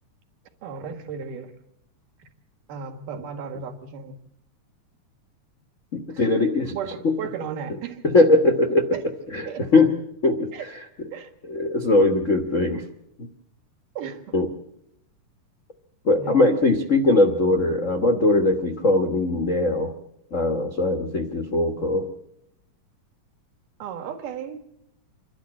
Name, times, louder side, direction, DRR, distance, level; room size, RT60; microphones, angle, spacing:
voice 1, 0.6-1.5 2.7-4.2 6.1-6.3 6.7-8.0 8.9-9.0 9.5-9.6 10.5-10.7 11.1-11.3 13.9-14.5 16.1-16.5 23.8-24.7, right 7 dB, 85° right, 5 dB, 3.3 m, -35 dB
voice 2, 5.9-6.7 8.1-9.0 9.3-9.9 10.2-10.5 11.5-12.8 14.3-14.5 16.0-19.9 20.3-22.0, left 2 dB, 70° left, 6 dB, 0.7 m, -20 dB
27.0 x 12.0 x 8.6 m, 0.79 s
omnidirectional pair, 3.6 m